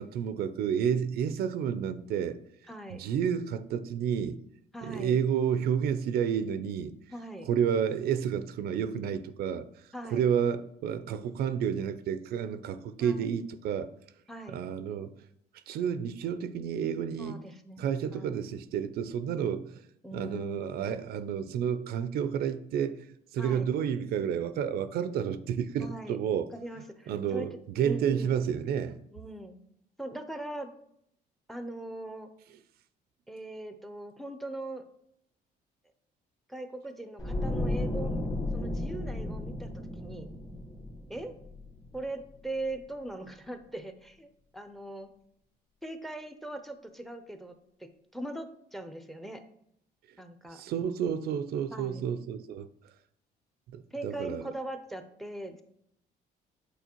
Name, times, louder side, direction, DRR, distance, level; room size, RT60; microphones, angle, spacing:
voice 1, 0.0-2.4 2.9-4.4 4.8-6.9 7.5-9.6 10.1-13.9 14.5-15.1 15.7-17.4 17.8-19.8 20.1-23.0 23.3-26.5 27.1-27.5 27.8-29.0 50.5-52.7 53.7-54.5, right 8 dB, 70° right, 0.4 m, -30 dB
voice 2, 2.7-3.0 4.7-5.2 7.1-7.5 9.9-10.3 13.0-13.3 14.3-14.7 17.2-18.5 20.0-21.0 23.4-23.7 25.8-26.2 26.5-28.4 29.1-29.6 30.0-30.7 31.5-32.3 33.3-34.8 36.5-38.2 38.5-40.3 41.1-41.3 41.9-44.3 44.5-45.1 45.8-47.5 47.8-49.4 50.2-50.6 51.7-52.0 53.9-55.6, right 1 dB, ahead, 0.5 m, -40 dB
sound 1, 37.2-42.3 42.6-42.8, left 1 dB, 20° left, 1.2 m, -34 dB
8.2 x 4.0 x 2.9 m
cardioid pair, 110°, 17 cm